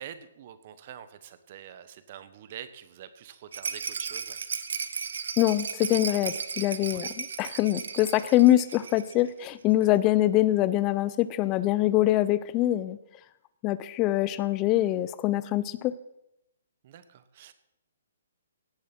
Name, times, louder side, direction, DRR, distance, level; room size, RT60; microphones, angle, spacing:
voice 1, 0.0-4.4 6.9-7.1 16.8-17.5, right 10 dB, 40° right, 13 dB, 1.1 m, -45 dB
Rattle, 3.5-9.2 9.5-9.6 9.8-9.9, right 6 dB, 70° right, 1.1 m, -35 dB
voice 2, 5.4-13.0 13.6-15.9, left 15 dB, 20° left, 16 dB, 0.4 m, -24 dB
17.0 x 7.2 x 6.0 m, 0.84 s
hypercardioid pair, 165°, 0 cm